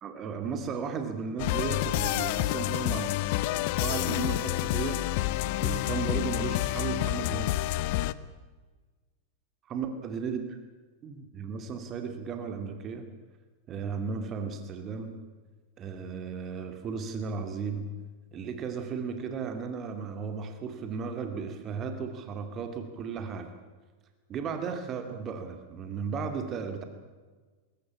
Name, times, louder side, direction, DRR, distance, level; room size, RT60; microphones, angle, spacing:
voice 1, 0.0-3.2 3.8-5.2 5.6-7.6 8.0-8.1 9.7-10.4 11.0-13.0 13.7-15.1 15.8-17.9 18.3-23.5 24.3-26.8, right 5 dB, 30° right, 7 dB, 2.4 m, -35 dB
sound 1, 1.4-8.1, left 16 dB, 50° left, 0.8 m, -28 dB
22.0 x 19.0 x 8.7 m, 1.4 s
figure-of-eight pair, 90°, 0 cm